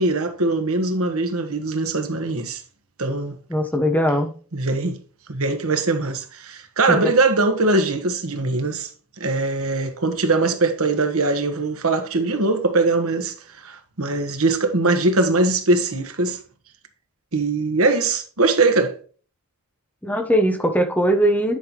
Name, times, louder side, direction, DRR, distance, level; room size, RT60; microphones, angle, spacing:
voice 1, 0.0-2.6 3.0-3.4 4.5-5.0 5.3-8.9 9.2-16.4 17.3-19.0, right 3 dB, 75° right, 1.5 m, -21 dB
voice 2, 3.5-4.3 6.9-7.1 20.0-21.6, equal, 5° left, 1.1 m, -20 dB
10.0 x 5.7 x 3.2 m
head